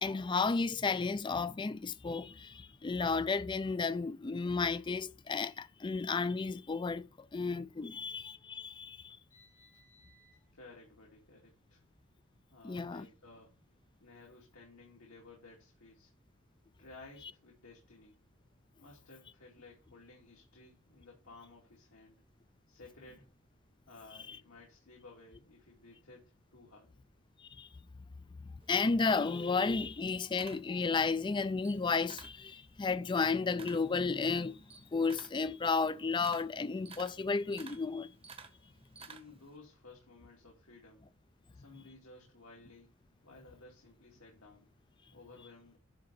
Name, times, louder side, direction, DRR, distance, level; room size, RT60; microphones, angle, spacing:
voice 1, 0.0-9.2 12.6-13.1 24.3-24.4 27.4-27.7 28.4-38.1, left 4 dB, 20° left, 0.3 m, -33 dB
voice 2, 9.3-11.8 12.5-13.6 14.0-16.1 16.8-18.2 18.8-22.2 22.7-23.3 23.9-26.9 39.0-41.1 41.5-42.9 43.2-44.7 45.1-45.8, left 3 dB, 80° left, 2.4 m, -56 dB
Camera, 28.6-31.2 31.5-32.4 32.8-39.5, right 5 dB, 25° right, 0.9 m, -53 dB
10.0 x 3.8 x 5.4 m
head